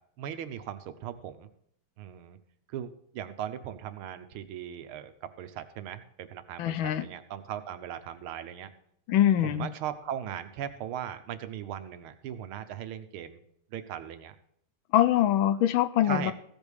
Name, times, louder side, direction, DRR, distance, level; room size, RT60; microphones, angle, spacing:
voice 1, 0.2-1.5 2.0-2.4 2.7-8.7 9.4-13.4 13.7-14.4 16.0-16.3, right 10 dB, 85° right, 10 dB, 1.7 m, -38 dB
voice 2, 6.6-7.1 9.1-9.7 14.9-16.3, left 11 dB, 75° left, 13 dB, 1.4 m, -23 dB
15.5 x 5.3 x 6.3 m, 0.70 s
omnidirectional pair, 2.3 m